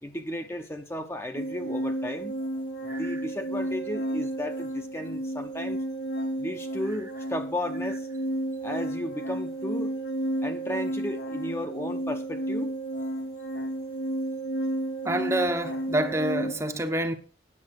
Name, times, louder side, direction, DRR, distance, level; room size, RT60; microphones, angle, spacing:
voice 1, 0.0-2.4 2.8-5.8 6.4-8.1 8.6-9.9 10.4-12.7, left 1 dB, 15° left, 0.9 m, -34 dB
sound 1, 1.4-16.5, right 1 dB, 80° left, 1.7 m, -32 dB
voice 2, 2.9-3.2 15.0-17.1, right 1 dB, 15° right, 1.0 m, -27 dB
9.8 x 7.2 x 6.5 m
head